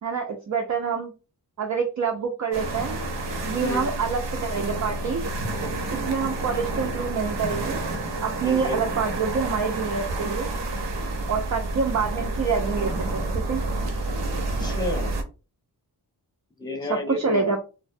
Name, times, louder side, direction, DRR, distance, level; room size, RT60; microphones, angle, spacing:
voice 1, 0.0-1.1 1.6-3.0 3.4-5.2 6.1-7.8 8.2-10.5 11.3-13.6 16.9-17.6, right 5 dB, 45° right, 3 dB, 0.4 m, -27 dB
sound 1, 2.5-15.2, right 2 dB, 80° right, 0.7 m, -29 dB
voice 2, 8.4-8.8 14.3-15.2 16.6-17.6, left 2 dB, 10° left, 2 dB, 0.7 m, -31 dB
2.6 x 2.1 x 2.6 m, 0.32 s
wide cardioid pair, 95°, 41 cm